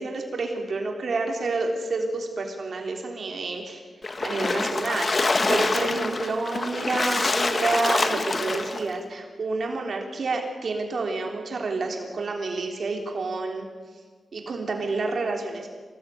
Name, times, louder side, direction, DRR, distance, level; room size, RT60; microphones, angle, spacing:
voice 1, 0.0-3.8 4.2-13.7 14.3-15.7, right 3 dB, 50° right, 2 dB, 3.6 m, -29 dB
Splash splatter, 4.0-8.9, left 3 dB, 30° left, 1.6 m, -25 dB
27.0 x 18.5 x 9.4 m, 1.5 s
wide cardioid pair, 180°, 0 cm